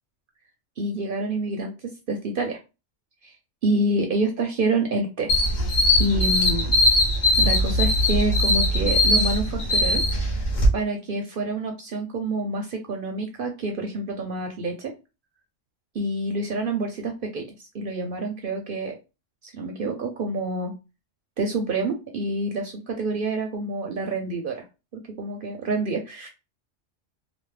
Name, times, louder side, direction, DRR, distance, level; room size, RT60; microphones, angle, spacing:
voice 1, 0.8-2.6 3.2-3.3 3.6-5.3 6.0-6.7 7.4-10.0 10.7-14.9 15.9-17.5 17.7-19.0 19.4-20.7 21.4-24.7 25.2-26.3, right 2 dB, 55° right, 3 dB, 0.6 m, -27 dB
sound 1, 5.3-10.7, left 1 dB, 45° left, 0.8 m, -20 dB
2.9 x 2.1 x 3.2 m, 0.27 s
omnidirectional pair, 1.3 m